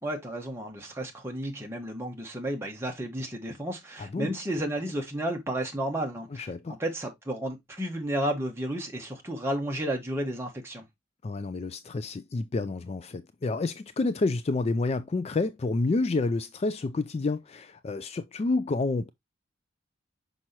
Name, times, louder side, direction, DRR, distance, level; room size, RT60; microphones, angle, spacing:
voice 1, 0.0-6.5 6.8-10.8, right 1 dB, 15° right, 1.5 m, -32 dB
voice 2, 6.3-6.8 11.2-19.1, left 3 dB, 30° left, 0.3 m, -29 dB
6.0 x 5.4 x 2.9 m
head